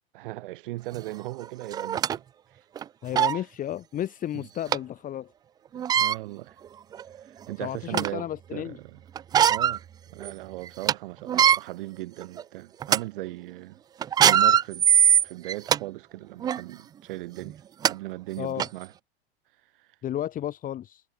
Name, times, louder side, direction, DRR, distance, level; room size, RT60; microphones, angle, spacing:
voice 1, 0.1-2.2 2.5-2.6 3.3-3.4 4.3-4.5 5.9-6.6 7.2-9.0 9.5-9.8 10.1-13.8 14.2-14.9 15.2-18.9 19.8-19.9, right 18 dB, 60° right, 6.3 m, -38 dB
sound 1, 1.0-1.1 1.7-2.2 2.8-2.9 3.1-3.4 4.7-4.8 5.7-6.2 6.9-7.0 7.5-8.2 9.2-9.8 10.2-10.3 10.7-10.9 11.3-11.6 12.2-12.4 12.8-13.0 14.0-15.8 16.4-16.6 17.5-17.6 17.8-17.9 18.6-18.7, right 9 dB, 15° right, 0.4 m, -21 dB
voice 2, 3.0-5.3 7.6-8.8 18.4-18.7 20.0-21.0, left 11 dB, 25° left, 4.5 m, -33 dB
hypercardioid pair, 130°, 30 cm